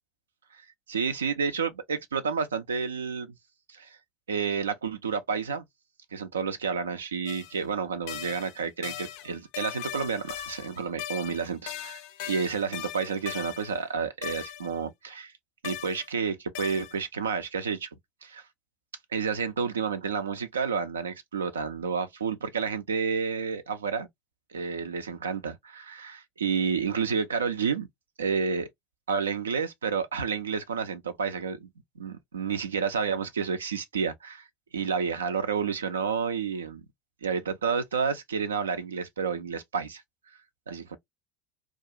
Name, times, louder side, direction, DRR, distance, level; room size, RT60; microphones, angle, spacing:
voice 1, 0.5-3.3 3.7-4.0 4.3-5.6 6.1-12.0 12.3-15.3 15.6-17.9 18.2-18.4 19.1-24.1 24.5-27.9 28.2-28.7 29.1-31.7 32.0-34.5 34.7-36.8 37.2-40.0 40.7-41.0, right 6 dB, 85° right, 0.3 m, -30 dB
sound 1, 7.3-7.6 8.1-13.8 14.2-14.8 15.6-16.1 16.5-17.0, left 12 dB, 70° left, 0.4 m, -39 dB
2.3 x 2.3 x 2.7 m
hypercardioid pair, 70°, 0 cm